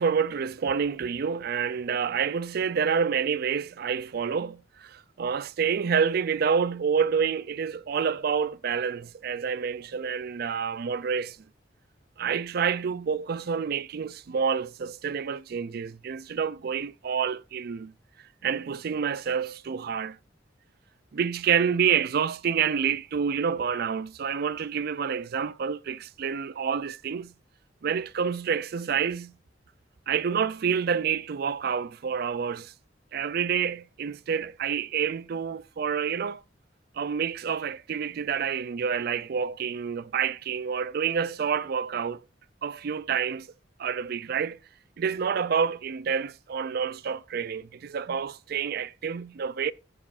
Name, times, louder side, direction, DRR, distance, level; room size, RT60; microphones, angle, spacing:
voice 1, 0.0-11.4 12.2-17.9 18.4-20.2 21.1-27.3 27.8-29.3 30.1-32.7 33.1-36.4 37.0-42.2 42.6-43.5 43.8-44.6 45.0-49.7, right 7 dB, 55° right, 0.4 m, -28 dB
14.5 x 7.4 x 2.5 m
head